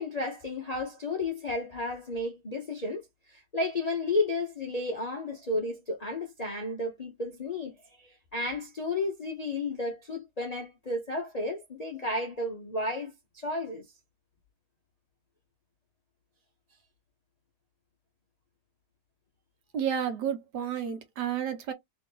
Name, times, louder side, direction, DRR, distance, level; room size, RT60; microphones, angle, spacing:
voice 1, 0.0-13.9, left 2 dB, 75° left, 0.3 m, -33 dB
voice 2, 19.7-21.7, right 8 dB, 70° right, 1.5 m, -31 dB
3.1 x 3.0 x 3.8 m
omnidirectional pair, 2.0 m